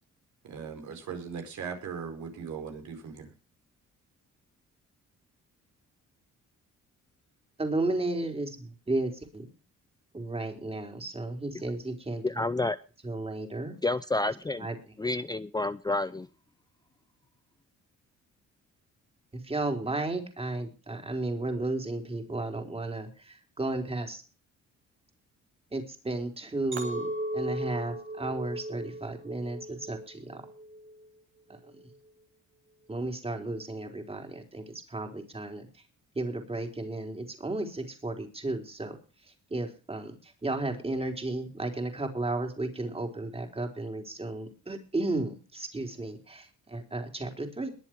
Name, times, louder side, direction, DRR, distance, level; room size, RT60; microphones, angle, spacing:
voice 1, 0.4-3.3, right 6 dB, 70° right, 4.7 m, -39 dB
voice 2, 7.6-9.4 10.1-12.4 13.0-13.8 14.6-14.8 19.3-24.2 25.7-30.5 31.5-31.6 32.9-35.7 36.1-39.0 39.5-47.7, right 2 dB, 20° right, 4.3 m, -33 dB
voice 3, 12.2-12.8 13.8-14.7 15.0-16.3, left 2 dB, 15° left, 0.6 m, -29 dB
Chink clink, 26.7-31.1 31.5-32.0, right 1 dB, 40° right, 2.7 m, -37 dB
22.0 x 7.5 x 4.8 m
cardioid pair, 90°, 30 cm